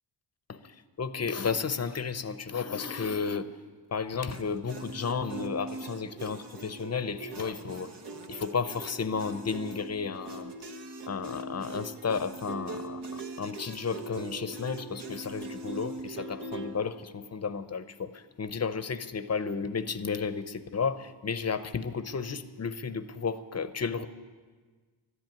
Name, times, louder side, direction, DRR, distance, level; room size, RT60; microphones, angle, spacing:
voice 1, 0.5-3.5 3.9-7.9 8.3-10.5 11.1-24.1, left 5 dB, 35° left, 13 dB, 0.7 m, -33 dB
sound 1, 4.3-16.8, right 2 dB, 60° right, 1.3 m, -41 dB
12.5 x 10.5 x 9.2 m, 1.5 s
cardioid pair, 105°, 45 cm